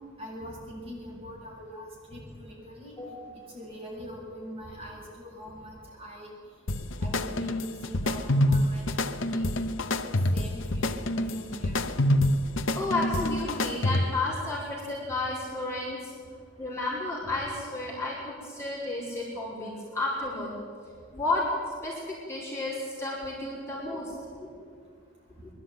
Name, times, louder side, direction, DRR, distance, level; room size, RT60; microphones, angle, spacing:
voice 1, 0.2-3.0 3.3-6.3 7.0-9.6 10.0-11.9 17.2-17.3, equal, 30° right, -5 dB, 7.8 m, -43 dB
voice 2, 3.0-3.3 12.7-16.1 16.6-20.5 21.1-21.4 21.8-24.5 25.4-25.5, left 2 dB, 15° left, -6 dB, 5.1 m, -32 dB
sound 1, 6.7-14.3, left 1 dB, 70° left, 0.9 m, -27 dB
23.0 x 12.0 x 9.6 m, 2.2 s
head